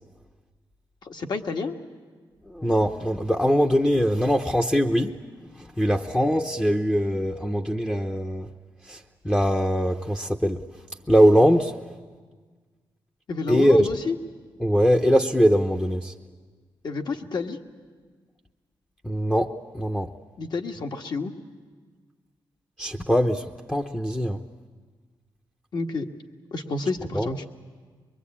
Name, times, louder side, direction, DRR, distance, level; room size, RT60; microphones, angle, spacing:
voice 1, 1.0-1.8 13.3-14.2 16.8-17.6 20.4-21.3 25.7-26.1 26.5-27.4, left 4 dB, 55° left, 4 dB, 1.5 m, -29 dB
voice 2, 2.5-5.2 5.8-8.5 8.9-10.6 11.1-11.7 13.5-13.9 14.6-16.1 19.0-20.1 22.8-24.4 27.1-27.3, equal, 10° left, 3 dB, 0.7 m, -22 dB
23.0 x 23.0 x 8.5 m, 1.5 s
wide cardioid pair, 115°, 9 cm